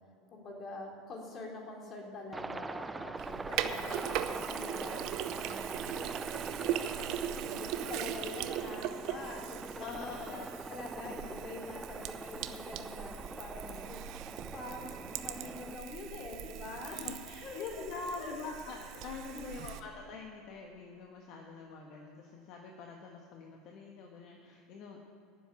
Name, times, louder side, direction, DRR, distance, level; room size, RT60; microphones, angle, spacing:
voice 1, 0.3-17.0 17.4-17.8 18.2-18.3 19.3-19.4, left 2 dB, 40° left, 0 dB, 3.3 m, -45 dB
Aircraft, 2.3-15.8, right 3 dB, 15° right, 0.4 m, -43 dB
Sink (filling or washing), 3.2-19.8, right 11 dB, 60° right, 0.8 m, -40 dB
voice 2, 3.4-4.1 9.8-10.5 11.0-11.1 13.6-13.9 16.7-25.0, left 4 dB, 55° left, 2 dB, 1.4 m, -45 dB
10.0 x 7.4 x 9.0 m, 2.6 s
hypercardioid pair, 95°, 0 cm